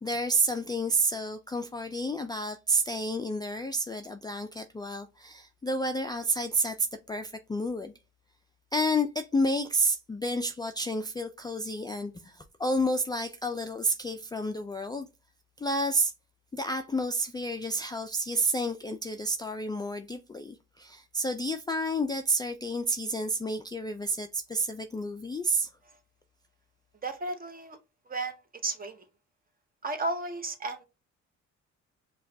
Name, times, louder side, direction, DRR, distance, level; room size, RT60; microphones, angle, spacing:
voice 1, 0.0-7.9 8.7-15.1 15.6-16.1 16.5-25.7, right 1 dB, 15° left, 0.3 m, -30 dB
voice 2, 27.0-27.8 28.1-29.0 29.8-30.8, right 2 dB, 30° right, 0.8 m, -34 dB
5.5 x 2.3 x 2.6 m
cardioid pair, 90°, 30 cm